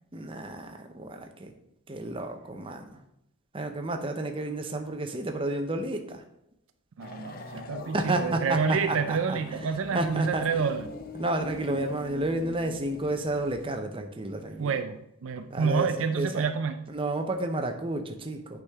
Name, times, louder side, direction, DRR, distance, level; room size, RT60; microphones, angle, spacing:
voice 1, 0.1-1.5 1.9-3.0 3.5-6.2 7.9-9.4 9.9-10.4 11.1-14.8 15.5-16.5 16.9-18.6, right 2 dB, 25° right, 5 dB, 0.7 m, -31 dB
sound 1, 7.0-13.8, left 2 dB, 40° left, 0.6 m, -42 dB
voice 2, 7.0-10.9 14.6-16.8, right 5 dB, 60° right, 8 dB, 0.4 m, -28 dB
8.4 x 5.0 x 3.6 m, 0.81 s
head